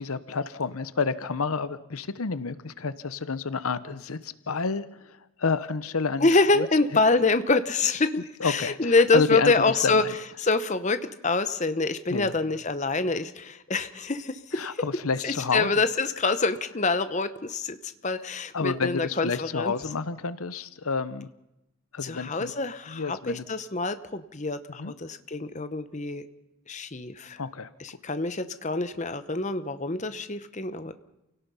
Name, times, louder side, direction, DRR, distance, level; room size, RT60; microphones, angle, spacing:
voice 1, 0.0-6.7 8.4-9.5 9.8-10.1 12.1-12.3 14.5-15.7 18.5-21.3 21.9-22.5 22.9-23.4 24.8-24.9 27.4-27.7, left 4 dB, 80° left, 15 dB, 0.9 m, -29 dB
voice 2, 6.2-10.0 10.4-14.7 15.2-19.7 22.0-26.2 26.7-27.4 27.8-30.9, left 3 dB, 35° left, 11 dB, 0.9 m, -26 dB
28.5 x 17.5 x 5.6 m, 0.89 s
head